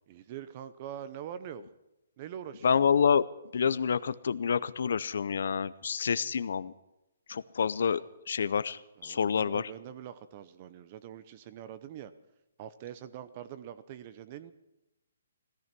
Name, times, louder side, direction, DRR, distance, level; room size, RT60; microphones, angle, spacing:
voice 1, 0.1-1.7 2.2-2.7 9.0-12.1 12.6-14.5, right 10 dB, 30° right, 13 dB, 0.7 m, -44 dB
voice 2, 2.6-3.3 3.5-6.7 7.3-8.0 8.3-9.7, left 6 dB, 65° left, 16 dB, 0.6 m, -28 dB
16.5 x 14.5 x 6.0 m, 0.92 s
hypercardioid pair, 165°, 0 cm